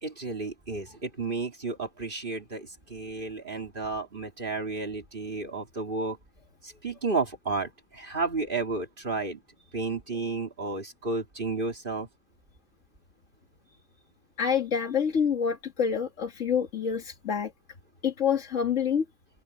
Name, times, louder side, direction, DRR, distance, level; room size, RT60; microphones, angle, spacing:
voice 1, 0.0-6.2 6.6-9.4 9.7-12.1, right 3 dB, 45° right, 2.9 m, -32 dB
voice 2, 14.4-17.5 18.0-19.1, left 7 dB, 85° left, 2.1 m, -27 dB
open air
omnidirectional pair, 1.2 m